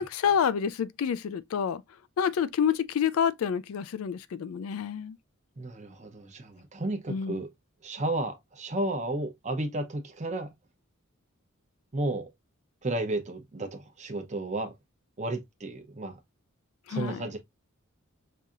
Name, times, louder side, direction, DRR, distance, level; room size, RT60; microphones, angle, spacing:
voice 1, 0.0-1.8 2.2-5.2 7.1-7.4 16.9-17.2, left 7 dB, 75° left, 0.4 m, -28 dB
voice 2, 5.6-7.5 7.8-10.5 11.9-12.3 12.8-14.7 15.2-16.2 16.9-17.4, right 2 dB, 35° right, 0.8 m, -33 dB
5.5 x 2.7 x 2.4 m
head